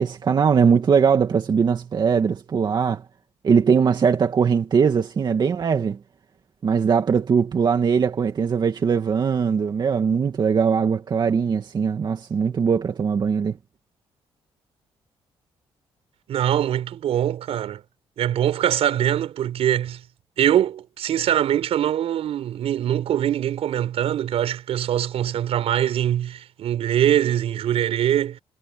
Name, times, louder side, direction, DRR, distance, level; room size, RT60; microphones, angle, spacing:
voice 1, 0.0-3.0 3.4-6.0 6.6-13.6, right 6 dB, 45° right, 2.3 m, -20 dB
voice 2, 16.3-17.8 18.2-20.0 20.4-28.4, right 11 dB, 80° right, 5.9 m, -23 dB
cardioid pair, 120°, 10 cm